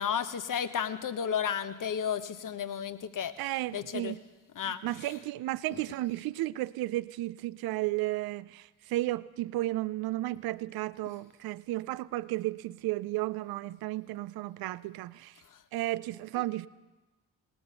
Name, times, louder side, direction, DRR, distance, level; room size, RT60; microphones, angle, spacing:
voice 1, 0.0-3.3 3.7-4.2 4.5-4.8 16.3-16.4, left 8 dB, 45° left, 1.0 m, -32 dB
voice 2, 3.4-4.2 4.6-15.3 15.7-16.7, right 17 dB, 55° right, 0.5 m, -33 dB
18.5 x 7.1 x 6.8 m
hypercardioid pair, 40°, 45 cm